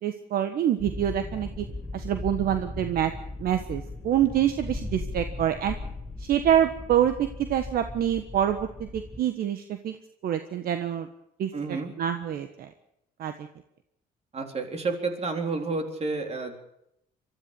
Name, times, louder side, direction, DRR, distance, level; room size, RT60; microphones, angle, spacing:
voice 1, 0.0-1.6 1.9-3.1 3.4-5.8 6.2-10.0 10.2-11.1 11.4-11.5 12.0-12.7 13.2-13.3, right 10 dB, 60° right, 8 dB, 1.4 m, -26 dB
sound 1, 0.8-9.2, left 2 dB, ahead, 5.4 m, -38 dB
voice 2, 11.5-12.0 14.3-16.6, right 3 dB, 40° right, 5 dB, 3.9 m, -30 dB
23.0 x 13.5 x 8.5 m, 0.79 s
cardioid pair, 110°, 17 cm